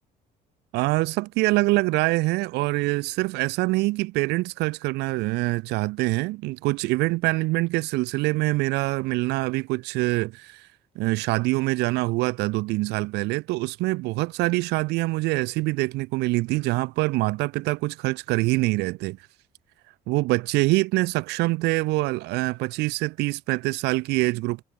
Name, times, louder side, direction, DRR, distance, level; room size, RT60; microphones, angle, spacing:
voice 1, 0.7-10.7 11.0-19.2 20.1-24.6, right 21 dB, 85° right, 0.5 m, -25 dB
cardioid pair, 110°, 17 cm